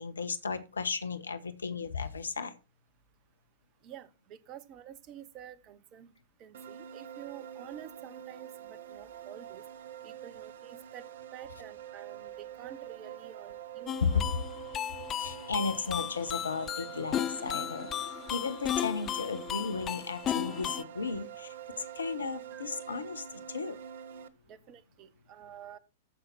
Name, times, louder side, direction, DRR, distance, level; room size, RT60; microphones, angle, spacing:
voice 1, 0.0-2.6 14.0-14.4 14.7-23.8, left 5 dB, 80° left, 12 dB, 1.3 m, -35 dB
voice 2, 3.8-6.1 6.4-9.6 10.0-11.0 11.3-14.2 22.5-22.6 24.5-25.8, right 10 dB, 35° right, 17 dB, 1.1 m, -49 dB
sound 1, 6.5-24.3, right 10 dB, 60° right, 1.0 m, -46 dB
sound 2, 13.9-20.8, left 11 dB, 30° left, 0.4 m, -35 dB
14.0 x 5.9 x 4.3 m, 0.29 s
figure-of-eight pair, 105°, 0 cm